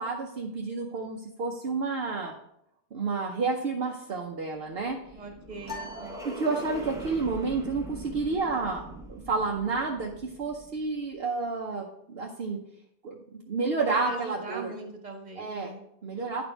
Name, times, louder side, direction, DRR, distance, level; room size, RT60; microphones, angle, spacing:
voice 1, 0.0-2.3 2.9-5.0 6.2-8.8 9.1-12.6 13.0-13.1 13.5-14.7 15.4-15.7 16.0-16.4, right 4 dB, 60° right, 0 dB, 1.0 m, -30 dB
sound 1, 4.7-11.0, right 2 dB, 5° right, 0.8 m, -43 dB
voice 2, 5.1-6.3 13.6-15.8, right 4 dB, 40° right, 2 dB, 1.4 m, -41 dB
sound 2, 5.6-7.1, left 3 dB, 65° left, 1.7 m, -43 dB
10.0 x 4.3 x 4.5 m, 0.75 s
omnidirectional pair, 1.2 m